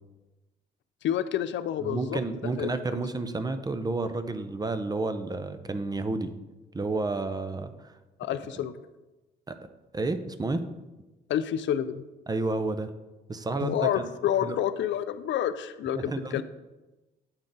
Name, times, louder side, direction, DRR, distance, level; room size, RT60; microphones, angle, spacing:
voice 1, 1.0-2.2 2.6-3.0 8.2-8.7 11.3-12.0 13.6-16.4, left 10 dB, 70° left, 12 dB, 0.4 m, -29 dB
voice 2, 1.8-6.3 6.7-7.9 9.5-9.6 9.9-10.6 12.3-12.9 13.3-14.0 14.4-14.6 16.0-16.4, right 3 dB, 20° right, 10 dB, 0.5 m, -30 dB
8.7 x 3.7 x 3.9 m, 1.1 s
cardioid pair, 90°, 20 cm